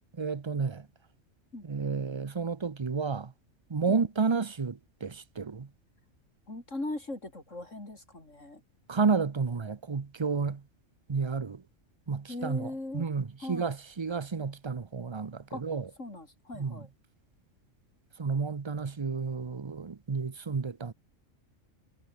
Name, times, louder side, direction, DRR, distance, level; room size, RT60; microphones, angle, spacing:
voice 1, 0.2-0.9 1.6-3.3 3.7-5.7 8.9-10.6 11.1-11.6 12.1-15.9 16.5-16.8 18.2-20.9, right 5 dB, 30° right, 0.6 m, -31 dB
voice 2, 6.5-8.6 12.3-13.1 13.4-13.7 15.5-15.6 16.0-16.9, left 2 dB, 65° left, 5.9 m, -39 dB
omnidirectional pair, 1.4 m